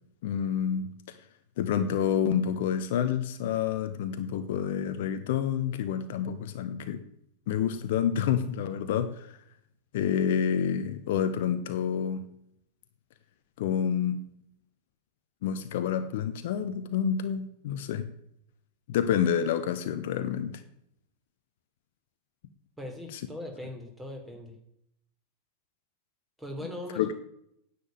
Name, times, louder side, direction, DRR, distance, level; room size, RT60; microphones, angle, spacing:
voice 1, 0.2-1.2 1.6-7.0 7.5-9.4 9.9-12.2 13.6-14.2 15.4-18.0 18.9-20.6 23.1-23.2 26.9-27.1, left 8 dB, 55° left, 10 dB, 0.9 m, -28 dB
voice 2, 22.8-24.5 26.4-27.1, left 1 dB, 5° right, 3 dB, 3.1 m, -40 dB
10.0 x 7.1 x 8.8 m, 0.74 s
figure-of-eight pair, 90°, 0 cm